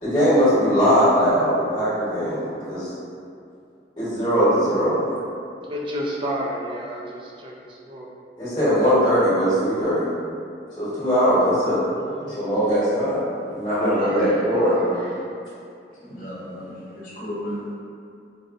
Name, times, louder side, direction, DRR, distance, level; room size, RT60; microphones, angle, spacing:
voice 1, 0.0-2.9 4.0-5.1 8.4-10.1 10.8-11.8 12.2-15.1, equal, 25° left, -14 dB, 1.1 m, -20 dB
voice 2, 5.6-8.1 11.9-12.6 13.9-15.1, equal, 30° right, -3 dB, 0.3 m, -32 dB
voice 3, 13.8-14.7 15.9-17.7, equal, 50° left, -8 dB, 0.8 m, -31 dB
4.0 x 2.1 x 2.4 m, 2.5 s
head